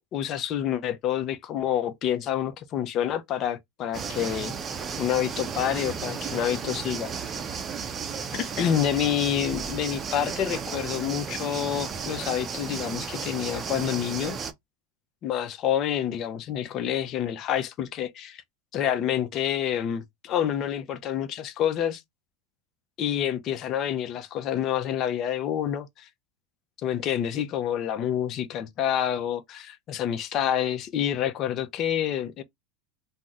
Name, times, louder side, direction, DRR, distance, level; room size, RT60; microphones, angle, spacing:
voice 1, 0.0-4.5 5.0-7.4 8.3-14.4 15.2-18.4 18.7-22.0 23.0-26.1 26.8-32.4, left 10 dB, 40° left, 0.5 m, -28 dB
sound 1, 3.9-14.5, right 6 dB, 30° right, 0.5 m, -34 dB
2.7 x 2.0 x 3.4 m
supercardioid pair, 110°, 0 cm